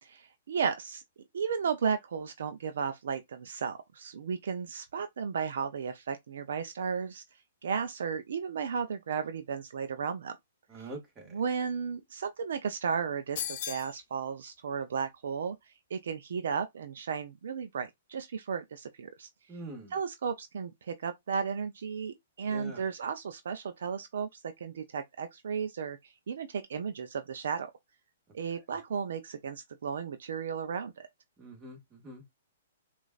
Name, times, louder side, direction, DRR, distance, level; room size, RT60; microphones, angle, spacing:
voice 1, 0.0-1.0 1.3-7.2 7.6-10.4 10.8-10.9 11.3-15.6 15.9-19.3 19.9-27.7 28.3-31.1, right 6 dB, 70° right, 0.5 m, -34 dB
voice 2, 10.7-11.3 19.5-19.9 22.4-22.8 31.4-32.2, right 1 dB, 20° right, 1.6 m, -44 dB
sound 1, 13.4-14.0, left 10 dB, 45° left, 0.8 m, -36 dB
5.0 x 2.5 x 2.3 m
hypercardioid pair, 130°, 0 cm